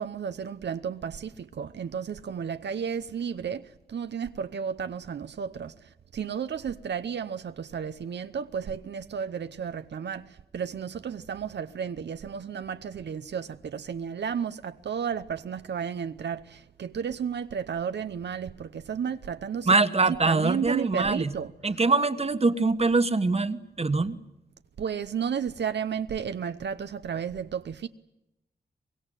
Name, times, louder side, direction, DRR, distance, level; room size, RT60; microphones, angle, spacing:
voice 1, 0.0-19.7 20.1-21.8 24.8-27.9, right 7 dB, 80° right, 0.8 m, -33 dB
voice 2, 19.7-21.3 21.6-24.2, right 3 dB, 35° right, 1.4 m, -23 dB
24.0 x 22.0 x 9.0 m
wide cardioid pair, 80°, 18 cm